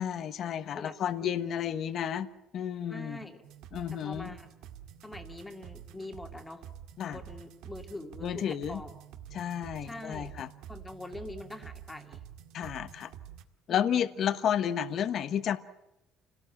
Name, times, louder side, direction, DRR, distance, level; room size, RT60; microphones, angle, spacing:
voice 1, 0.0-2.3 2.5-3.2 3.7-4.3 7.0-7.2 8.2-8.8 9.3-10.5 12.5-13.1 13.7-15.6, left 9 dB, 40° left, 12 dB, 1.1 m, -31 dB
voice 2, 0.7-1.6 2.9-3.4 3.9-4.5 5.0-6.6 7.1-8.9 9.8-10.3 10.7-12.2 13.7-14.1, left 2 dB, 5° left, 5 dB, 2.1 m, -44 dB
sound 1, 3.4-13.4, right 10 dB, 70° right, 1.9 m, -48 dB
28.5 x 18.0 x 9.0 m, 0.89 s
cardioid pair, 180°, 0 cm